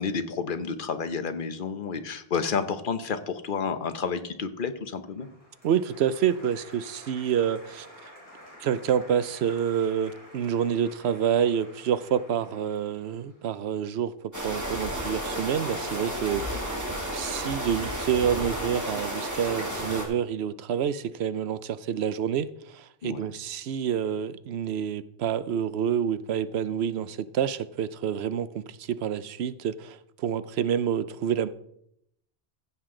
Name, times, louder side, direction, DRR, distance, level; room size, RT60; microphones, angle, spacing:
voice 1, 0.0-5.3 23.0-23.2, left 5 dB, 55° left, 1.1 m, -30 dB
Applause, 5.1-14.2, equal, 15° left, 5.0 m, -50 dB
voice 2, 5.6-7.9 8.6-16.7 17.1-31.5, right 8 dB, 80° right, 0.9 m, -28 dB
sound 1, 14.3-20.0, equal, 15° right, 2.4 m, -32 dB
15.0 x 7.8 x 3.8 m
omnidirectional pair, 1.1 m